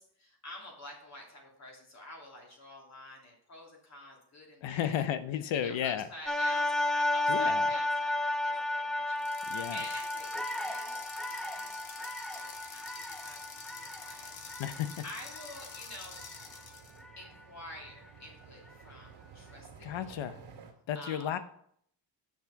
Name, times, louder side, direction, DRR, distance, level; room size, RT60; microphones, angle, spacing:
voice 1, 0.0-5.1 5.6-14.4 15.0-16.2 17.2-20.1 20.9-21.3, left 1 dB, 35° left, -1 dB, 3.0 m, -49 dB
voice 2, 4.6-6.1 7.3-7.7 9.5-9.8 14.6-14.9 19.8-20.4 20.9-21.4, left 10 dB, 75° left, 12 dB, 0.9 m, -33 dB
sound 1, 6.3-16.5 17.0-17.2, left 2 dB, ahead, 0.4 m, -33 dB
sound 2, 9.2-17.0, left 5 dB, 50° left, 1.3 m, -48 dB
sound 3, 9.6-20.7, right 6 dB, 65° right, 2.5 m, -56 dB
7.4 x 6.0 x 5.8 m, 0.66 s
cardioid pair, 130°, 46 cm